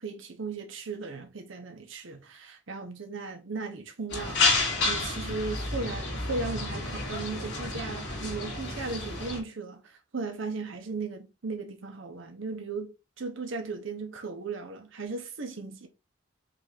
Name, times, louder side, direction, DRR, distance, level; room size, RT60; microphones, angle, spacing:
voice 1, 0.0-15.9, right 3 dB, 75° right, 0.8 m, -37 dB
sound 1, 4.1-9.4, left 3 dB, 65° left, 2.4 m, -30 dB
5.8 x 2.5 x 3.4 m
head